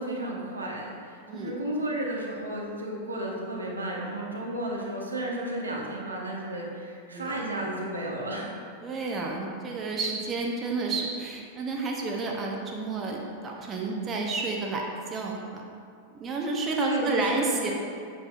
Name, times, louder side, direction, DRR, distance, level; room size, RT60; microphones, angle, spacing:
voice 1, 0.0-8.5 16.8-17.7, right 1 dB, 80° right, -2 dB, 1.1 m, -32 dB
voice 2, 8.8-15.6 16.1-17.7, right 3 dB, 25° right, 0 dB, 0.8 m, -31 dB
7.9 x 7.1 x 2.5 m, 2.4 s
figure-of-eight pair, 90°, 0 cm